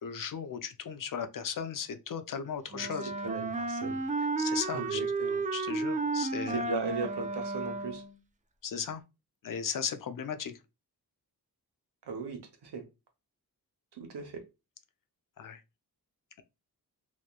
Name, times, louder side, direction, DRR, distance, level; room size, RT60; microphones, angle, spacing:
voice 1, 0.0-3.1 4.4-5.0 5.5-6.6 8.6-9.0 9.4-10.6 15.4-15.6, left 7 dB, 55° left, 0.5 m, -36 dB
Wind instrument woodwind instrument, 2.7-8.2, right 3 dB, 20° right, 0.3 m, -33 dB
voice 2, 3.2-4.3 4.7-5.4 6.5-8.0 12.1-12.8 13.9-14.4, right 4 dB, 85° right, 0.7 m, -37 dB
2.9 x 2.1 x 2.2 m
cardioid pair, 55°, 40 cm